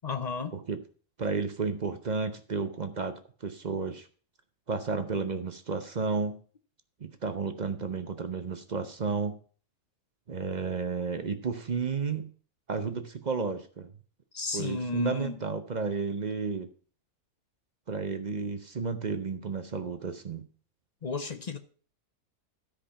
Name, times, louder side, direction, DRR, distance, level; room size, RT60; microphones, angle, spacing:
voice 1, 0.0-0.6 14.3-15.4 21.0-21.6, left 4 dB, 50° left, 0.5 m, -33 dB
voice 2, 1.2-4.1 4.7-6.4 7.0-9.4 10.3-12.3 12.7-13.9 14.5-16.7 17.9-20.5, right 5 dB, 45° right, 0.6 m, -32 dB
13.0 x 5.1 x 5.6 m
omnidirectional pair, 1.6 m